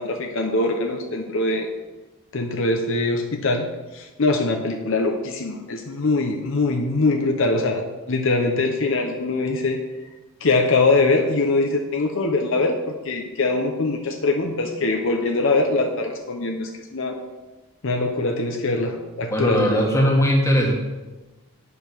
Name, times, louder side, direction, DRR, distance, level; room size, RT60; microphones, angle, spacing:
voice 1, 0.0-1.7 2.3-9.8 10.4-17.2 17.8-19.8, left 3 dB, 60° left, 2 dB, 0.8 m, -23 dB
voice 2, 19.3-20.7, equal, 15° left, -1 dB, 1.5 m, -19 dB
8.8 x 5.2 x 6.2 m, 1.1 s
head